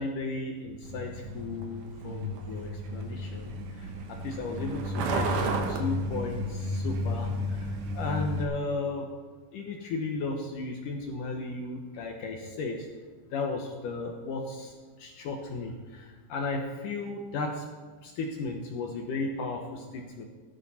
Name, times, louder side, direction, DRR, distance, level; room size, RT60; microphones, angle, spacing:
voice 1, 0.0-9.1 9.5-12.9 13.3-17.7 18.0-20.3, left 3 dB, 75° left, 2 dB, 2.0 m, -35 dB
Truck, 0.8-8.4, equal, 65° right, 2.1 m, -32 dB
16.5 x 12.0 x 4.3 m, 1.4 s
omnidirectional pair, 5.2 m